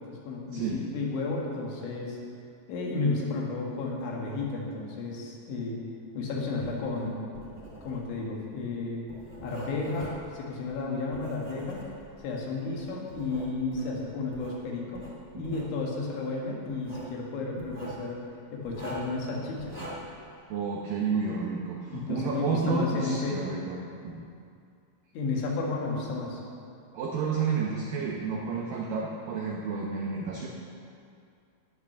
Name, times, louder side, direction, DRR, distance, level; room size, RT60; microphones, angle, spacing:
voice 1, 0.1-2.2 2.7-5.8 6.2-7.2 7.8-9.1 9.4-11.8 12.2-15.0 15.4-18.2 18.5-19.8 21.9-23.4 25.1-26.4, left 3 dB, 75° left, -2 dB, 4.1 m, -32 dB
Writing, 6.6-12.3 12.8-14.6 14.9-15.7 16.7-17.1 17.6-18.0 18.6-19.2 19.6-20.2, right 1 dB, 15° right, 1.4 m, -44 dB
voice 2, 20.5-23.8 24.0-24.3 26.9-30.5, right 5 dB, 80° right, -2 dB, 2.0 m, -31 dB
18.0 x 6.0 x 6.8 m, 2.4 s
omnidirectional pair, 5.5 m